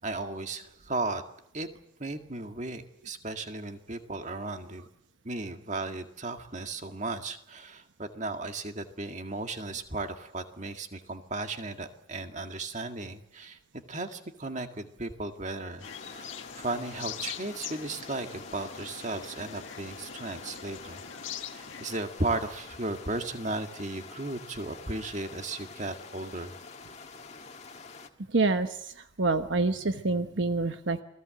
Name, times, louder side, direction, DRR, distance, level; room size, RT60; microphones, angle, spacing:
voice 1, 0.0-1.2 1.5-1.7 2.0-4.9 5.2-21.0 21.5-26.6, right 2 dB, 35° right, 6 dB, 1.9 m, -35 dB
sound 1, 15.8-22.0, left 8 dB, 75° left, 1.5 m, -43 dB
sound 2, 15.8-28.1, left 4 dB, 35° left, 1.8 m, -47 dB
voice 2, 28.3-31.0, right 3 dB, 65° right, 8 dB, 1.1 m, -27 dB
28.5 x 19.0 x 7.8 m, 0.77 s
head